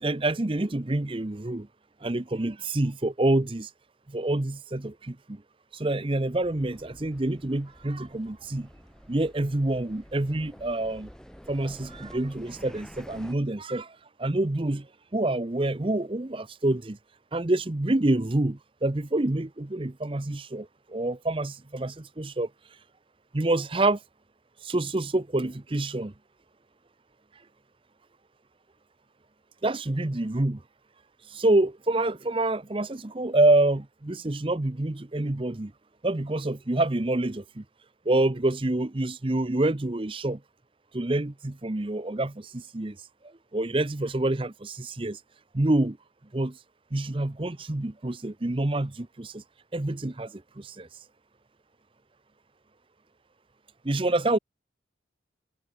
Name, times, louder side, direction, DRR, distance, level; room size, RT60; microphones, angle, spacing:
voice 1, 0.0-1.7 2.0-3.7 4.1-5.4 5.7-8.7 9.1-11.1 11.5-14.9 15.1-17.0 17.3-22.5 23.3-24.0 24.6-26.1 29.6-30.6 31.3-35.7 36.0-37.6 38.1-40.4 40.9-43.0 43.5-45.2 45.5-46.0 46.3-46.6 46.9-49.4 49.7-50.9 53.8-54.4, right 2 dB, 30° right, 0.7 m, -27 dB
sound 1, 6.3-13.3, equal, 5° left, 1.5 m, -49 dB
head